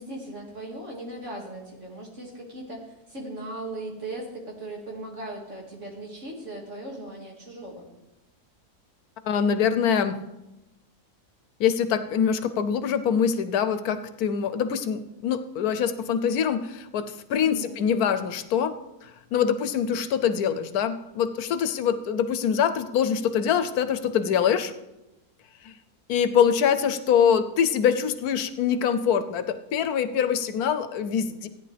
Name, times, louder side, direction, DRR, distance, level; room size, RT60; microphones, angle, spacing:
voice 1, 0.0-7.9 17.4-17.8, right 1 dB, 55° right, -1 dB, 2.5 m, -38 dB
voice 2, 9.2-10.2 11.6-18.7 19.0-24.7 25.6-25.7 26.1-31.5, left 8 dB, 80° left, 10 dB, 1.2 m, -24 dB
16.0 x 9.9 x 3.3 m, 0.95 s
omnidirectional pair, 1.6 m